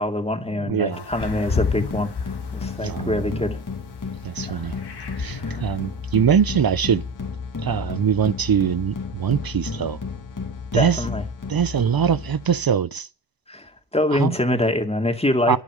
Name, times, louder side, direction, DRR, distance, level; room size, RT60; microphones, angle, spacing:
voice 1, 0.0-3.6 4.5-4.8 5.4-5.6 10.7-11.2 13.5-15.6, left 1 dB, 15° left, 2.4 m, -25 dB
voice 2, 0.6-1.0 2.8-3.3 4.2-4.7 5.2-7.0 7.6-10.0 10.7-11.0 11.5-13.1 14.1-14.4 15.5-15.6, right 8 dB, 65° right, 0.7 m, -22 dB
sound 1, 0.9-3.6 4.0-5.8, left 5 dB, 80° left, 1.5 m, -31 dB
sound 2, 1.2-12.7, left 5 dB, 55° left, 2.3 m, -33 dB
11.5 x 8.4 x 9.8 m
wide cardioid pair, 75°, 39 cm